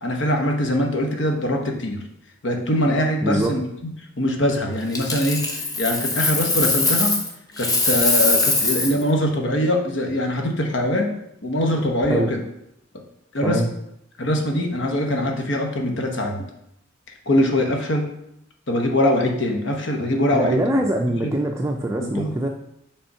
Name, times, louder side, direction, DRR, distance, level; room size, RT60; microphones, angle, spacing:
voice 1, 0.0-2.0 2.4-3.9 4.2-7.2 7.6-11.1 11.4-12.4 13.3-13.6 14.2-16.5 17.3-18.1 18.7-20.6 21.2-21.3 22.0-22.3, left 1 dB, 65° left, 3 dB, 1.0 m, -22 dB
voice 2, 3.2-3.6 12.1-12.3 13.4-13.7 20.3-22.5, right 1 dB, 15° right, 1 dB, 0.4 m, -23 dB
Coin (dropping), 4.9-7.3 7.6-9.0 11.9-12.1, left 3 dB, 20° left, 0.8 m, -22 dB
5.4 x 3.6 x 5.6 m, 0.79 s
head